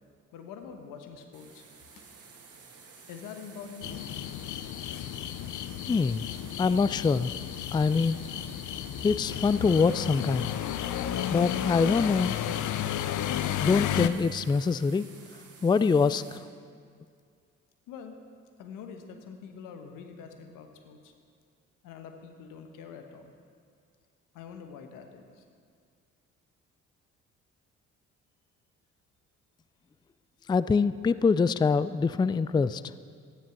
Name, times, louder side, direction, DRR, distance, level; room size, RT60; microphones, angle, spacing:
voice 1, 0.3-1.6 2.0-2.1 3.1-4.1 17.9-18.2 18.6-21.1 21.8-23.3 24.3-25.4, left 6 dB, 85° left, 6 dB, 1.2 m, -45 dB
sound 1, 1.3-16.4, right 5 dB, 50° right, 2.3 m, -52 dB
sound 2, 3.8-14.1, left 11 dB, 70° left, 0.6 m, -33 dB
voice 2, 5.9-6.3 6.6-7.3 7.7-8.2 9.0-10.5 11.3-12.4 13.6-15.1 15.6-16.2 30.5-32.8, left 5 dB, 15° left, 15 dB, 0.3 m, -24 dB
13.0 x 10.5 x 6.0 m, 2.1 s
supercardioid pair, 60°, 31 cm